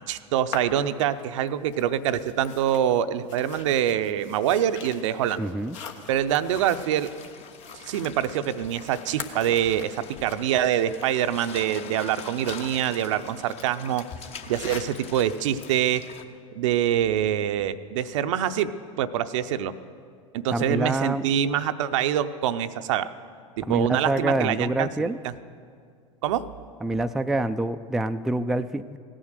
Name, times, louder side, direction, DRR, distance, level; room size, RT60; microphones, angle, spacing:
voice 1, 0.1-5.4 6.1-7.1 7.9-14.1 14.5-16.0 16.5-18.7 19.0-19.7 20.3-23.1 23.6-25.3 26.2-26.5, right 10 dB, 65° right, 12 dB, 0.6 m, -25 dB
sound 1, 0.5-16.1, left 6 dB, 65° left, 1.3 m, -45 dB
voice 2, 5.4-5.8 20.5-21.3 23.7-25.2 26.8-29.0, right 1 dB, ahead, 8 dB, 0.4 m, -26 dB
sound 2, 6.5-16.2, left 6 dB, 35° left, 1.0 m, -44 dB
16.5 x 10.0 x 6.5 m, 2.2 s
figure-of-eight pair, 85°, 17 cm